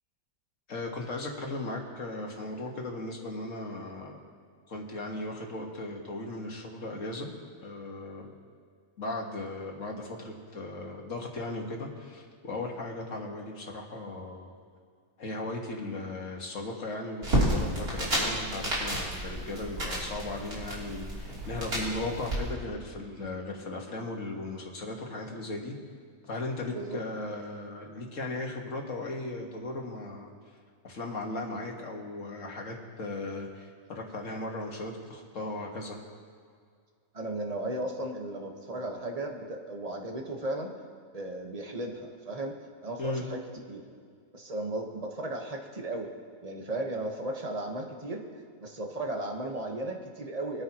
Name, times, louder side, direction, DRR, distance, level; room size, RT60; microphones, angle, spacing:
voice 1, 0.7-4.2 4.7-7.3 7.6-8.3 9.0-14.5 15.2-25.8 26.3-30.3 30.8-36.0 43.0-43.2, left 2 dB, 60° left, 0 dB, 1.9 m, -37 dB
sound 1, 17.2-22.4, right 1 dB, 90° right, 3.8 m, -31 dB
voice 2, 26.7-27.0 37.1-40.7 41.1-43.4 43.7-43.8 44.3-46.1 46.4-48.2 48.6-50.6, right 1 dB, 30° right, 2 dB, 1.2 m, -35 dB
22.5 x 9.7 x 3.0 m, 2.1 s
omnidirectional pair, 1.5 m